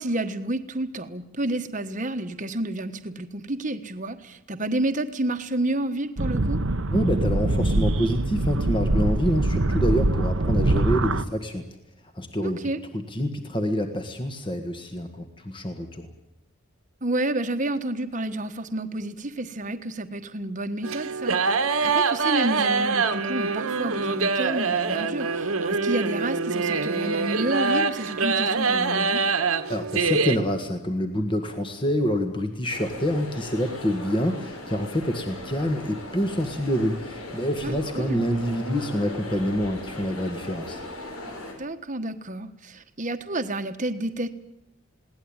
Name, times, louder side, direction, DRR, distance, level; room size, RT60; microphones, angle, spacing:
voice 1, 0.0-6.6 12.4-12.8 17.0-29.2 37.6-38.2 41.6-44.3, right 1 dB, 35° right, 8 dB, 1.4 m, -30 dB
sound 1, 6.2-11.2, right 2 dB, 60° right, 1.0 m, -23 dB
voice 2, 6.9-11.6 12.2-12.6 13.1-16.1 29.7-40.8, equal, 25° left, 5 dB, 1.7 m, -27 dB
sound 2, 20.8-30.4, right 4 dB, 75° right, 1.6 m, -24 dB
sound 3, 32.7-41.5, left 1 dB, 85° left, 5.7 m, -38 dB
21.5 x 17.5 x 8.9 m, 0.92 s
head